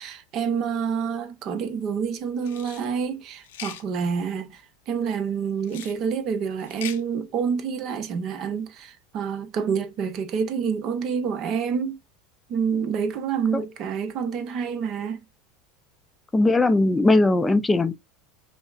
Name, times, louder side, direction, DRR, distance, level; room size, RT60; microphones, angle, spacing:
voice 1, 0.0-12.0 12.5-15.2, right 6 dB, 50° right, 0.7 m, -28 dB
sound 1, 2.4-2.8 3.4-3.8 5.6-6.0 6.6-7.0, left 11 dB, 75° left, 0.6 m, -39 dB
voice 2, 16.3-17.9, left 2 dB, 15° left, 0.4 m, -19 dB
5.3 x 2.0 x 2.3 m
hypercardioid pair, 90°, 0 cm